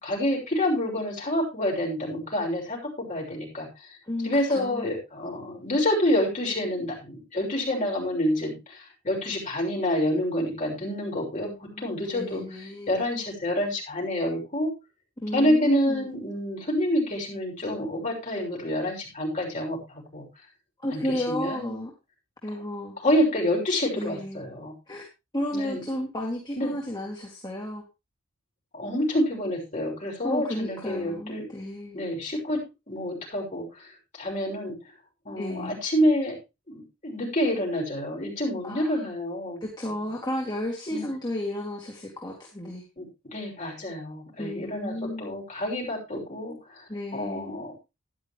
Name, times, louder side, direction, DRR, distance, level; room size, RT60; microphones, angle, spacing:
voice 1, 0.0-2.8 3.1-3.7 4.2-12.4 12.9-14.7 15.3-20.2 20.9-21.8 23.0-24.7 25.5-25.8 26.6-26.7 28.7-31.4 31.9-32.6 32.9-34.7 35.2-36.4 36.7-39.6 40.9-41.1 43.0-43.1 43.3-46.8 47.1-47.7, left 1 dB, 35° left, -2 dB, 6.4 m, -28 dB
voice 2, 4.0-4.9 11.4-13.0 15.2-16.1 20.8-21.9 22.4-23.0 24.0-24.4 24.9-25.0 25.3-27.8 30.2-32.0 35.4-35.8 38.6-39.0 39.6-42.8 44.4-45.4 46.9-47.6, left 1 dB, 20° left, -1 dB, 2.7 m, -33 dB
14.0 x 11.5 x 3.2 m, 0.26 s
head